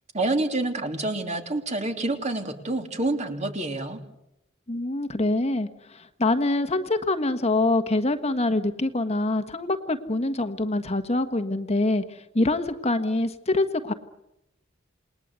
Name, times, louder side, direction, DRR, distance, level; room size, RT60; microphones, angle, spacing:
voice 1, 0.1-4.0, right 2 dB, 40° right, 5 dB, 3.3 m, -27 dB
voice 2, 4.7-13.9, left 2 dB, 35° left, 8 dB, 1.4 m, -25 dB
28.5 x 20.5 x 8.2 m, 0.86 s
head